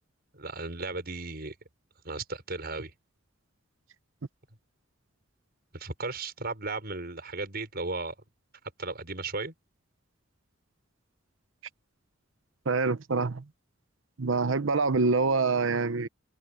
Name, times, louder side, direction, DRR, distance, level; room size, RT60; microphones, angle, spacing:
voice 1, 0.3-1.5 2.0-2.9 5.7-8.1 8.8-9.5, right 3 dB, 55° right, 5.8 m, -35 dB
voice 2, 12.7-13.4 14.2-16.1, right 4 dB, 80° right, 0.8 m, -25 dB
head